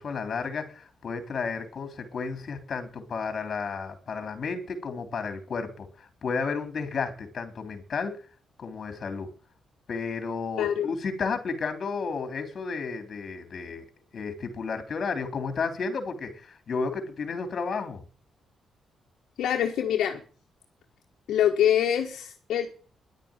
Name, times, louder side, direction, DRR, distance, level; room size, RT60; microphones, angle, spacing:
voice 1, 0.0-8.2 8.6-9.3 9.9-13.9 14.1-18.0, left 5 dB, 50° left, 8 dB, 3.4 m, -32 dB
voice 2, 10.6-10.9 19.4-20.2 21.3-22.7, left 10 dB, 80° left, 2 dB, 1.5 m, -24 dB
11.0 x 9.0 x 9.0 m, 0.41 s
cardioid pair, 80°, 0 cm